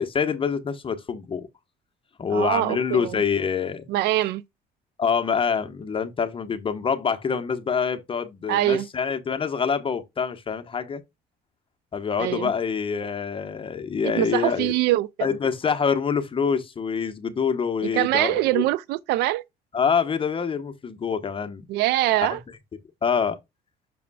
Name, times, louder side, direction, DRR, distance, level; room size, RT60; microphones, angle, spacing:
voice 1, 0.0-1.5 2.2-3.8 5.0-11.0 11.9-14.7 15.2-18.7 19.7-21.6 22.3-22.4 23.0-23.4, left 6 dB, 30° left, 1.1 m, -26 dB
voice 2, 2.3-3.2 3.9-4.4 8.5-8.9 12.2-12.5 14.0-15.3 17.9-19.4 21.7-22.4, right 15 dB, 85° right, 0.5 m, -23 dB
6.8 x 6.4 x 2.3 m
cardioid pair, 110°, 17 cm